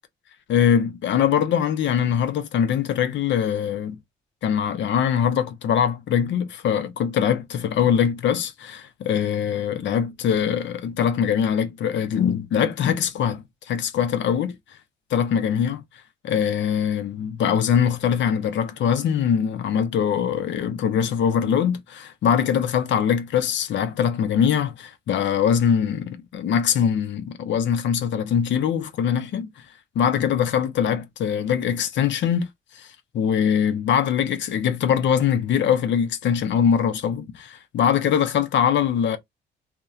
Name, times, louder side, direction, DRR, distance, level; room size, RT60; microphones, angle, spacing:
voice 1, 0.5-4.0 4.4-14.6 15.1-15.8 16.2-29.5 30.0-32.5 32.7-32.9 33.1-39.2, left 8 dB, 65° left, 0.6 m, -22 dB
2.7 x 2.1 x 2.3 m
cardioid pair, 90°, 20 cm